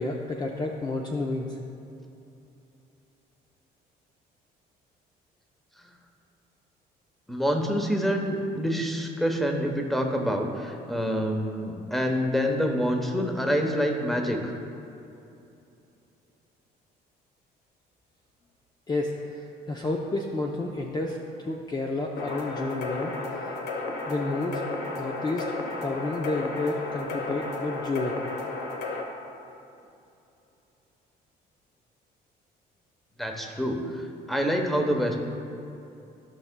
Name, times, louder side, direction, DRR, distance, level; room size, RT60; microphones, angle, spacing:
voice 1, 0.0-1.6 18.9-23.1 24.1-24.6 25.0-25.5 25.8-28.2, left 2 dB, 25° left, 0 dB, 0.5 m, -30 dB
voice 2, 7.3-14.5 33.2-35.2, equal, ahead, 3 dB, 0.9 m, -27 dB
sound 1, 22.2-29.0, left 3 dB, 80° left, 1.0 m, -33 dB
15.0 x 5.5 x 2.2 m, 2.8 s
cardioid pair, 110°, 17 cm